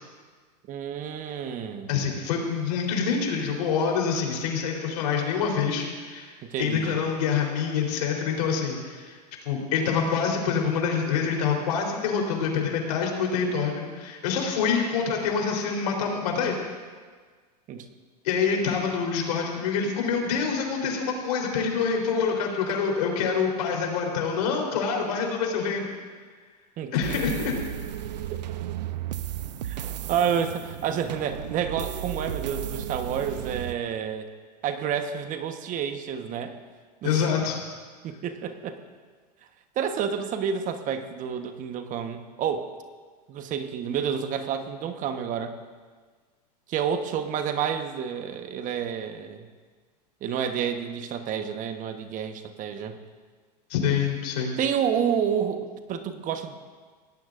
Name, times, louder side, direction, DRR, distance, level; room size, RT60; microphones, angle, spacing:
voice 1, 0.7-2.0 6.4-7.0 17.7-17.9 26.8-27.0 29.6-34.3 34.6-36.6 37.0-37.2 38.0-38.8 39.7-42.7 43.3-45.6 46.7-49.5 50.2-53.0 54.6-56.6, right 8 dB, 40° right, 7 dB, 1.3 m, -29 dB
voice 2, 1.9-6.3 6.6-9.2 9.5-16.6 18.2-25.9 26.9-27.6 37.0-37.6 53.7-54.6, left 6 dB, 70° left, 0 dB, 4.0 m, -26 dB
sound 1, 27.0-33.7, right 11 dB, 80° right, 0.7 m, -34 dB
24.5 x 17.5 x 2.6 m, 1.5 s
hypercardioid pair, 105°, 21 cm